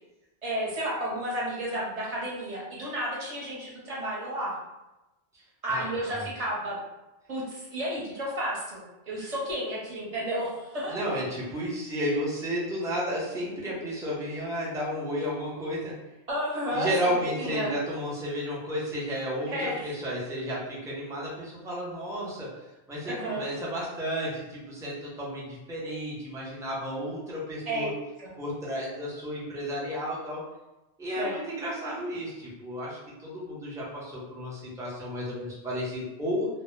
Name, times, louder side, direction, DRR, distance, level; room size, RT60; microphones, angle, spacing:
voice 1, 0.4-4.6 5.6-6.8 7.3-11.0 16.3-17.7 19.5-20.0 23.0-23.5 27.7-27.9 28.2-28.3 31.2-31.3, right 1 dB, 40° right, -5 dB, 0.7 m, -32 dB
voice 2, 5.7-6.3 10.9-15.9 16.7-22.5 22.9-27.9 28.4-30.4 31.0-36.5, equal, 5° right, -7 dB, 0.4 m, -32 dB
2.0 x 2.0 x 3.1 m, 1.0 s
omnidirectional pair, 1.1 m